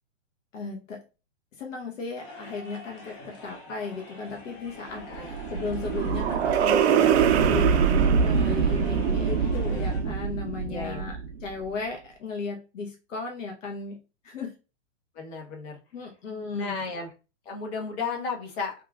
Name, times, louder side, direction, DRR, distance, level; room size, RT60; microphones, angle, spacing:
voice 1, 0.5-1.0 1.6-14.0 14.2-14.5 15.9-16.8, left 4 dB, 80° left, 1 dB, 0.9 m, -36 dB
sound 1, 2.2-10.0, left 2 dB, 20° left, 0.4 m, -44 dB
sound 2, 5.0-11.4, right 7 dB, 60° right, 0.5 m, -23 dB
voice 2, 10.7-11.0 15.1-15.8 16.5-17.1 17.4-18.7, left 4 dB, 55° left, 0 dB, 1.1 m, -33 dB
3.0 x 2.4 x 2.3 m, 0.31 s
hypercardioid pair, 135°, 38 cm